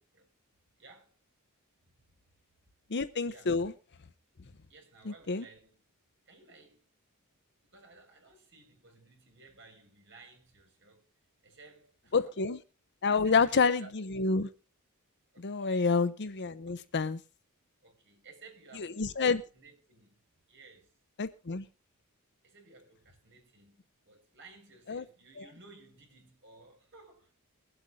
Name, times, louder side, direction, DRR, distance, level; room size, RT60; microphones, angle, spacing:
voice 1, 0.8-1.2 3.3-3.5 4.7-5.8 6.2-6.9 7.6-11.1 11.4-12.3 13.1-13.9 15.3-16.0 16.6-16.8 17.8-21.0 22.4-27.3, right 3 dB, 55° right, 5.3 m, -57 dB
voice 2, 2.9-3.7 5.1-5.5 12.1-12.6 13.0-14.5 15.4-17.2 18.8-19.4 21.2-21.7 24.9-25.0 25.4-25.5, left 4 dB, 50° left, 0.7 m, -28 dB
22.0 x 8.0 x 3.6 m
head